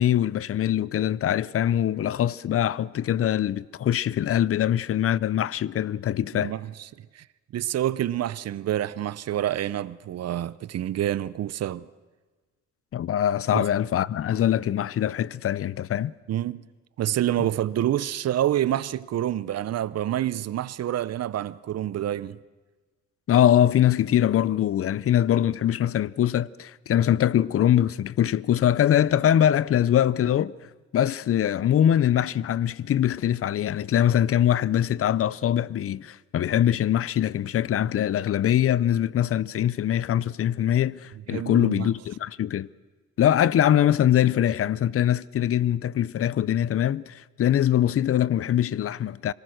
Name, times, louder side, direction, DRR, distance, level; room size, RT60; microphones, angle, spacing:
voice 1, 0.0-6.5 12.9-16.1 23.3-30.5 30.9-42.7 43.2-49.3, left 11 dB, 50° left, 0.6 m, -23 dB
voice 2, 6.3-7.2 7.5-11.9 13.5-13.7 16.3-16.6 17.0-22.4 41.3-41.9, right 12 dB, 55° right, 0.6 m, -27 dB
25.5 x 18.5 x 6.4 m
cardioid pair, 90°, 30 cm